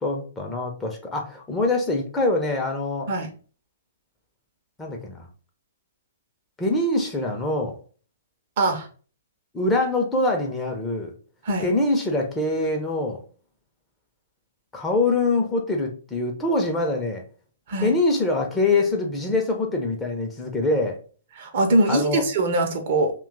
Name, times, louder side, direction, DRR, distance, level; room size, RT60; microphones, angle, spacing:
voice 1, 0.0-3.1 4.8-5.3 6.6-7.7 9.5-11.1 11.6-13.2 14.7-17.2 17.8-21.0 21.9-22.3, left 2 dB, 10° left, 1 dB, 0.7 m, -24 dB
voice 2, 8.6-8.9 11.4-11.6 17.7-17.9 21.4-23.1, right 2 dB, 45° right, 5 dB, 0.7 m, -22 dB
2.8 x 2.3 x 3.8 m, 0.39 s
figure-of-eight pair, 115°, 0 cm